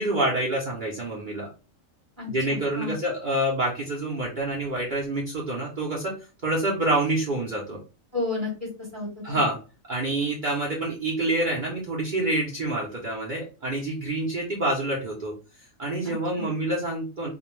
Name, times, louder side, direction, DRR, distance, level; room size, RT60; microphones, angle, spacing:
voice 1, 0.0-1.5 2.3-6.1 6.4-7.8 9.2-9.6 9.9-15.3 15.8-17.3, right 1 dB, 50° right, -4 dB, 0.6 m, -27 dB
voice 2, 2.2-3.0 8.1-9.4 16.0-16.5, left 3 dB, 15° left, -3 dB, 0.6 m, -32 dB
2.4 x 2.1 x 3.0 m, 0.35 s
omnidirectional pair, 1.4 m